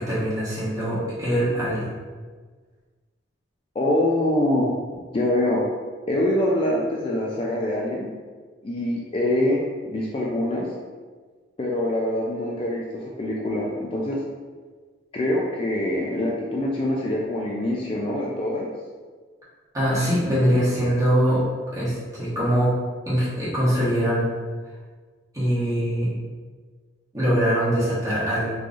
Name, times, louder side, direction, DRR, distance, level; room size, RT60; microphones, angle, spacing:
voice 1, 0.0-1.9 19.7-21.4 21.7-22.7 23.1-24.3 25.3-26.1 27.1-28.5, equal, 20° right, -9 dB, 1.2 m, -22 dB
voice 2, 3.8-4.7 5.1-5.6 6.1-8.1 8.6-9.6 9.9-10.7 11.6-12.9 13.2-14.2 15.1-18.7, left 1 dB, 30° left, -3 dB, 0.3 m, -24 dB
3.8 x 3.0 x 2.4 m, 1.5 s
head